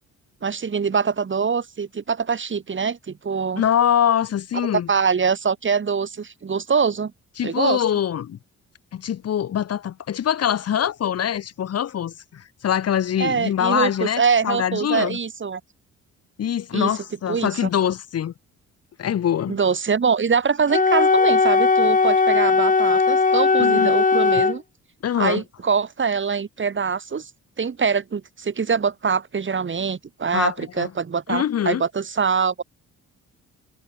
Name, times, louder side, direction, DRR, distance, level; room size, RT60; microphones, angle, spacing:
voice 1, 0.4-3.6 4.7-7.1 7.4-7.8 13.2-15.6 16.7-16.9 17.3-17.7 19.5-24.6 25.2-27.3 27.6-32.6, right 6 dB, 40° right, 7.4 m, -24 dB
voice 2, 3.6-4.9 7.4-8.4 8.9-15.2 16.4-18.3 19.0-19.6 23.6-23.9 25.0-25.4 30.3-30.9 31.3-31.8, left 9 dB, 55° left, 1.4 m, -23 dB
Wind instrument woodwind instrument, 20.7-24.6, left 4 dB, 25° left, 2.9 m, -18 dB
cardioid pair, 90°, 30 cm